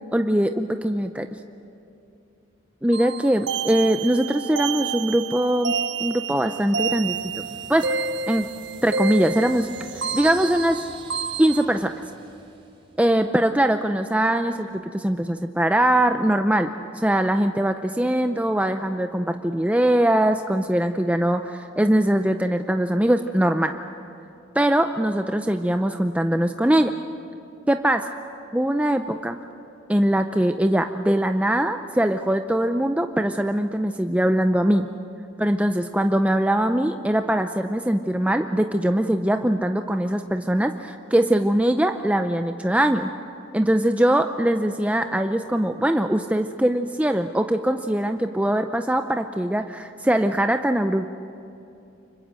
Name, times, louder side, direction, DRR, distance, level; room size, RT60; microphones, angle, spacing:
voice 1, 0.1-1.3 2.8-7.4 7.7-7.9 8.3-8.5 8.8-10.8 11.4-11.9 13.0-23.7 24.5-26.9 27.7-28.1 28.5-29.4 29.9-34.9 35.4-43.1 43.5-51.1, right 1 dB, 5° right, 6 dB, 0.6 m, -22 dB
sound 1, 2.9-11.7, right 5 dB, 65° right, 0.8 m, -30 dB
sound 2, 6.5-13.4, right 3 dB, 25° right, 3.9 m, -46 dB
29.5 x 25.0 x 7.7 m, 2.7 s
head